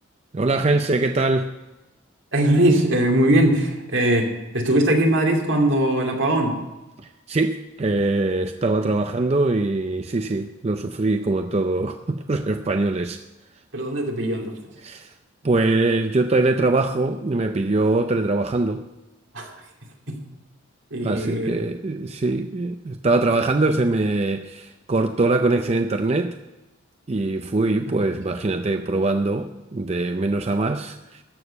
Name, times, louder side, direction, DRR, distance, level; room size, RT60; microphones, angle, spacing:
voice 1, 0.3-1.5 7.0-13.2 14.8-15.1 15.4-18.8 21.0-26.4 27.1-31.2, right 2 dB, 30° right, 7 dB, 0.5 m, -22 dB
voice 2, 2.3-6.6 13.7-14.6 19.3-19.6 20.1-20.2 20.9-21.6, right 1 dB, 70° right, 1 dB, 2.5 m, -20 dB
13.5 x 6.6 x 8.6 m, 1.0 s
head